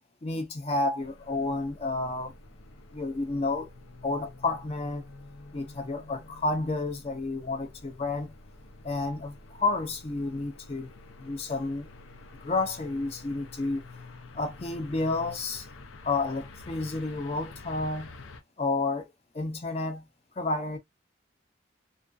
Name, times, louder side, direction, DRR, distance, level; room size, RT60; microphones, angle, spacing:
voice 1, 0.2-2.3 2.9-3.7 4.0-5.0 5.5-8.3 8.8-10.9 11.2-11.9 12.4-13.8 14.3-15.7 16.0-18.1 18.6-19.1 19.3-20.1 20.4-20.8, left 3 dB, 30° left, 0.5 m, -30 dB
sound 1, 1.0-18.4, left 3 dB, 90° left, 0.5 m, -48 dB
2.4 x 2.3 x 2.3 m
head